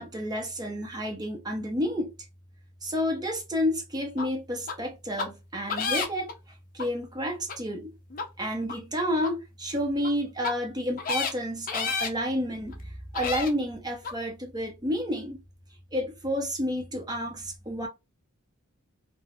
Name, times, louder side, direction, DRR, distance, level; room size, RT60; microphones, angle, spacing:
voice 1, 0.0-2.1 2.8-6.3 6.7-7.9 8.4-15.4 15.9-17.9, equal, 20° right, 0.7 m, -30 dB
sound 1, 4.2-4.3 4.7-4.8 5.2-5.3 5.7-6.3 6.8-6.9 7.5-7.6 8.1-8.2 8.7-8.8 9.2-9.3 10.0-10.1 10.4-10.5 11.0-11.3 11.7-12.1 12.7-12.8 13.1-13.5 14.0-14.1, left 5 dB, 40° left, 0.5 m, -30 dB
2.3 x 2.1 x 3.4 m
head